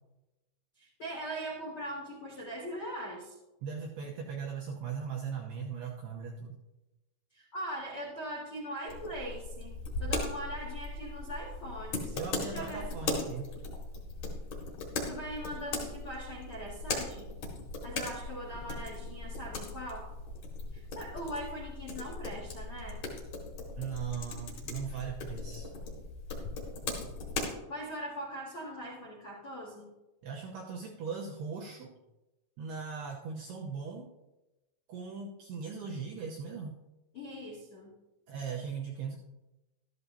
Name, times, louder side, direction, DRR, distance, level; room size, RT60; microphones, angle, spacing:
voice 1, 0.8-3.3 7.3-12.1 12.5-12.9 15.1-17.3 17.8-20.1 20.7-23.0 27.7-29.9 37.1-37.9, equal, 70° left, -2 dB, 1.2 m, -41 dB
voice 2, 3.6-6.6 12.1-13.5 23.8-25.7 30.2-32.0 32.6-34.1 34.9-36.8 38.3-39.2, right 6 dB, 80° right, -2 dB, 2.4 m, -39 dB
sound 1, 8.9-27.5, left 3 dB, 55° left, 2.2 m, -39 dB
14.0 x 13.0 x 2.8 m, 1.0 s
omnidirectional pair, 5.9 m